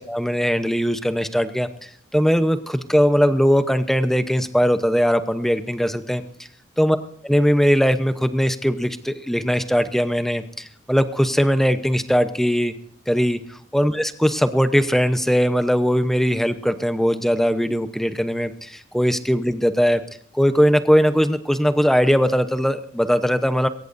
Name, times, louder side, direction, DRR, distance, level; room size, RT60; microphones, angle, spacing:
voice 1, 0.0-6.2 6.8-7.0 7.2-12.7 13.1-20.0 20.3-23.7, equal, ahead, 10 dB, 0.8 m, -20 dB
22.0 x 18.0 x 2.6 m, 0.67 s
head